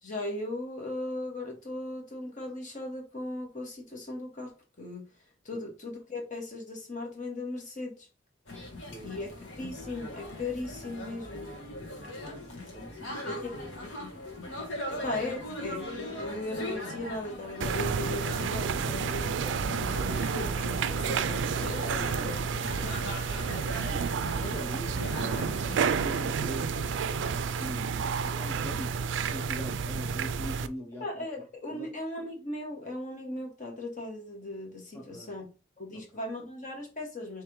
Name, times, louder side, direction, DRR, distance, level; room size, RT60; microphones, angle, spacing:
voice 1, 0.0-4.5 4.8-5.0 5.4-8.1 9.0-11.5 13.2-13.6 14.9-22.9 23.7-24.0 31.0-35.5 35.8-37.4, left 2 dB, 40° left, 1.5 m, -38 dB
sound 1, 8.5-26.9, left 1 dB, 80° left, 1.5 m, -40 dB
voice 2, 8.9-9.2 12.2-13.4 13.9-14.2 23.7-23.9 24.4-27.9 28.2-29.0 29.3-31.9 34.9-35.3 35.9-36.1, equal, 15° left, 0.8 m, -43 dB
sound 2, 17.6-30.7, right 6 dB, 70° right, 0.3 m, -30 dB
3.4 x 3.3 x 4.6 m
head